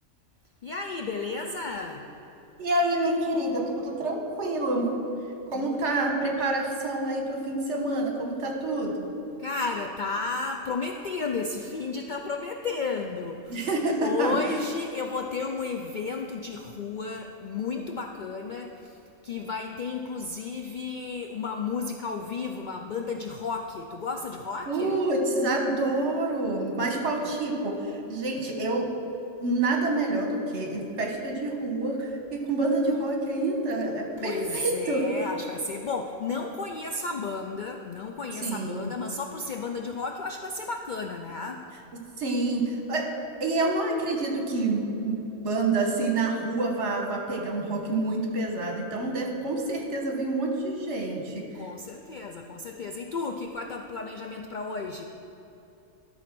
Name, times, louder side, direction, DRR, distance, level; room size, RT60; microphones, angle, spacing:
voice 1, 0.6-2.1 5.5-5.8 9.4-13.7 14.0-25.0 26.9-27.4 34.2-41.7 51.5-55.0, left 4 dB, 60° left, 2 dB, 0.5 m, -33 dB
voice 2, 2.6-4.9 5.5-8.9 13.5-14.4 24.7-28.9 29.4-35.0 38.4-38.9 42.2-43.1 43.4-51.4, right 2 dB, 65° right, 1 dB, 1.5 m, -27 dB
12.5 x 4.3 x 6.0 m, 3.0 s
omnidirectional pair, 1.3 m